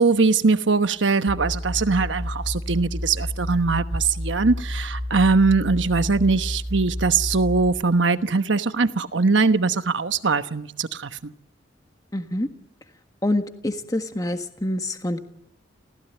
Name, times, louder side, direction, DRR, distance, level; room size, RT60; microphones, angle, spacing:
voice 1, 0.0-11.3, right 4 dB, 80° right, 1.1 m, -21 dB
sound 1, 1.3-7.7, equal, 25° right, 2.1 m, -30 dB
voice 2, 12.1-12.5 13.2-15.2, left 1 dB, 20° left, 1.5 m, -26 dB
29.0 x 16.0 x 9.2 m
head